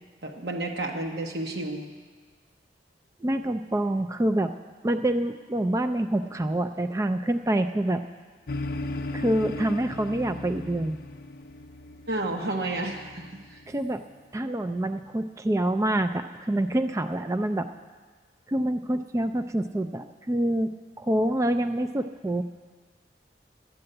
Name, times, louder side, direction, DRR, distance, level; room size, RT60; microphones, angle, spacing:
voice 1, 0.2-1.8 12.1-13.6, right 2 dB, 65° right, 1 dB, 1.1 m, -31 dB
voice 2, 3.2-4.5 4.8-8.0 9.1-11.0 13.7-14.0 14.3-17.7 18.5-20.7 21.0-22.4, right 1 dB, 15° right, 9 dB, 0.3 m, -26 dB
sound 1, 8.5-14.1, left 2 dB, 55° left, 0.5 m, -37 dB
11.5 x 8.7 x 7.8 m, 1.5 s
head